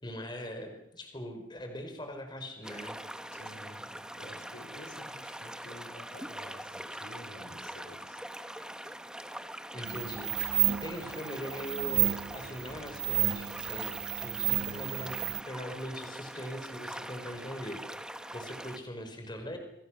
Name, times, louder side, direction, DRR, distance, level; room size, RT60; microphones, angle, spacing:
voice 1, 0.0-3.0 5.5-5.6 9.7-10.5 10.8-17.8 18.3-19.6, equal, 25° left, 5 dB, 5.0 m, -41 dB
sound 1, 2.6-18.8, right 1 dB, 5° right, 1.3 m, -43 dB
voice 2, 3.3-8.2, left 1 dB, 85° left, 9 dB, 3.4 m, -50 dB
sound 2, 9.9-15.4, right 12 dB, 60° right, 1.1 m, -31 dB
29.0 x 23.0 x 6.5 m, 0.80 s
head